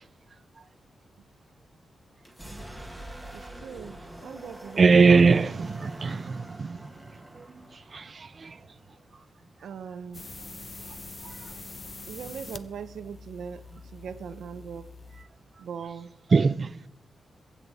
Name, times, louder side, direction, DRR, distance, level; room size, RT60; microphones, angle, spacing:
sound 1, 2.2-9.9, right 1 dB, ahead, 1.7 m, -45 dB
voice 1, 3.3-5.7 9.6-10.6 12.1-13.6 13.9-14.9 15.6-16.1, right 7 dB, 90° right, 0.6 m, -40 dB
voice 2, 4.8-6.8 7.9-8.0 8.4-8.5 16.3-16.7, right 4 dB, 40° right, 0.4 m, -20 dB
sound 2, 10.1-15.2, left 3 dB, 25° left, 0.8 m, -44 dB
23.0 x 8.4 x 4.1 m
wide cardioid pair, 130°, 0 cm